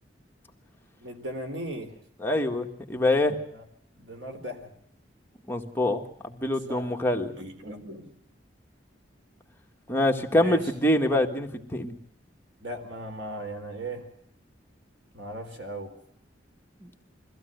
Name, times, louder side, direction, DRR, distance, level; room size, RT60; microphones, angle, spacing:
voice 1, 1.0-2.0 3.5-3.6 4.0-4.7 6.7-7.0 7.3-8.1 10.4-10.7 12.6-14.1 15.1-15.9, right 1 dB, 80° right, 5 dB, 4.1 m, -38 dB
voice 2, 2.2-3.4 5.5-6.0 6.4-7.4 9.9-11.9 16.8-16.9, left 1 dB, 15° left, 2 dB, 1.7 m, -25 dB
23.0 x 15.5 x 8.0 m, 0.73 s
head